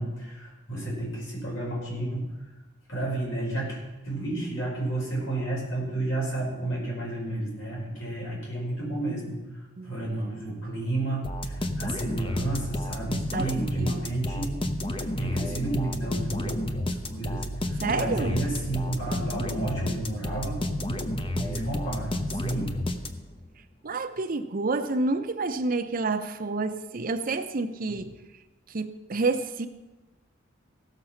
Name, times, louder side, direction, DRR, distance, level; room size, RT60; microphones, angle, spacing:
voice 1, 0.0-2.3 2.9-9.4 9.8-14.6 15.2-20.6 20.9-21.0 21.3-22.7, right 2 dB, 70° left, -4 dB, 5.1 m, -31 dB
voice 2, 9.8-10.2 13.3-13.5 13.8-14.1 17.8-18.4 23.8-28.2 28.7-29.7, right 3 dB, 45° right, 8 dB, 0.6 m, -29 dB
sound 1, 11.2-23.5, left 1 dB, 25° left, 0.7 m, -31 dB
16.0 x 6.7 x 5.8 m, 1.1 s
head